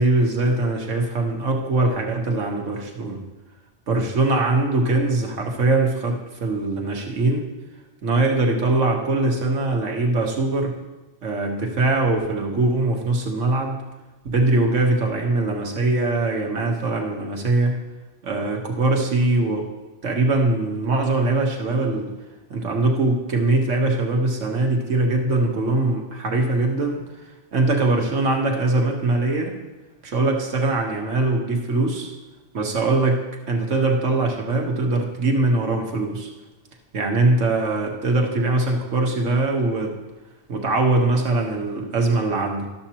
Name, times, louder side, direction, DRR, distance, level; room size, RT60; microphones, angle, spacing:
voice 1, 0.0-3.2 3.9-7.4 8.0-10.8 11.2-13.8 14.2-17.8 18.2-19.7 20.0-22.1 22.5-27.0 27.5-29.6 30.0-32.1 32.5-36.3 36.9-40.0 40.5-42.7, right 2 dB, 90° right, 1 dB, 1.6 m, -22 dB
13.0 x 7.1 x 2.9 m, 1.1 s
omnidirectional pair, 1.2 m